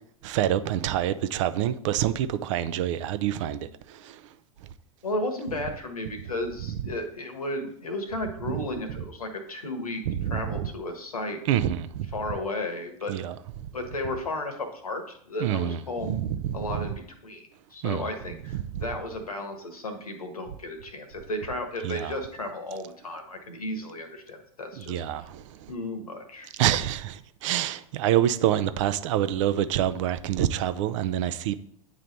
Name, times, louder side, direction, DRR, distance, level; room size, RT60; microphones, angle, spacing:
voice 1, 0.2-4.2 10.1-10.7 11.5-12.1 13.1-13.3 15.4-16.8 17.8-18.1 18.5-18.8 21.8-22.1 24.8-25.7 26.6-31.6, right 11 dB, 60° right, 0.5 m, -27 dB
voice 2, 5.0-11.4 12.1-13.1 13.7-16.2 16.5-25.3 25.7-26.5, left 1 dB, 90° left, 1.2 m, -34 dB
9.3 x 3.2 x 4.0 m
hypercardioid pair, 100°, 18 cm